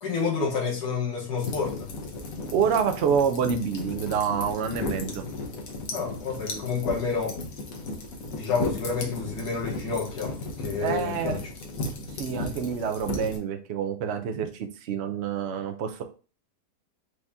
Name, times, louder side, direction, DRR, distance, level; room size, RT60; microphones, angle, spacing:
voice 1, 0.0-1.7 5.9-7.4 8.3-10.4 10.6-11.4, left 5 dB, 85° left, 1.8 m, -29 dB
sound 1, 1.4-13.4, left 2 dB, 60° left, 1.3 m, -35 dB
voice 2, 2.5-5.2 10.8-11.4 12.1-16.0, right 7 dB, 65° right, 0.6 m, -27 dB
4.9 x 2.7 x 3.4 m
omnidirectional pair, 1.7 m